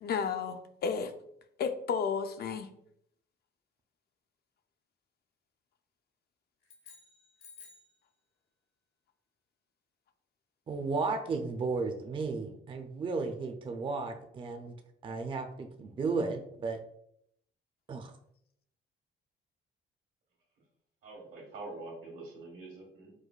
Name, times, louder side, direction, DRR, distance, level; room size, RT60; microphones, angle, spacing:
voice 1, 0.0-1.1 1.6-2.7, left 6 dB, 55° left, 8 dB, 0.4 m, -32 dB
sound 1, 6.6-8.0, left 5 dB, 75° left, 1.0 m, -54 dB
voice 2, 10.7-14.7 15.0-16.8 17.9-18.1, right 4 dB, 25° right, 5 dB, 0.4 m, -34 dB
voice 3, 21.0-23.1, right 3 dB, 80° right, -1 dB, 1.3 m, -45 dB
4.7 x 2.1 x 2.3 m, 0.72 s
cardioid pair, 90°, 20 cm